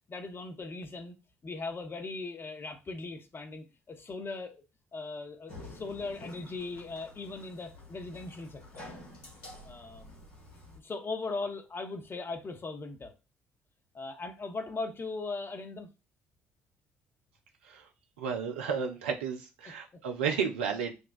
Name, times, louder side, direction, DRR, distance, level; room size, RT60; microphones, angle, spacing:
voice 1, 0.1-1.1 1.4-4.6 4.9-8.9 9.6-10.2 10.8-13.1 13.9-15.9, left 3 dB, 35° left, 0.9 m, -39 dB
sound 1, 5.5-10.8, left 2 dB, 80° left, 1.3 m, -49 dB
voice 2, 18.2-20.9, right 6 dB, 80° right, 0.4 m, -32 dB
6.2 x 2.3 x 2.4 m
figure-of-eight pair, 45°, 7 cm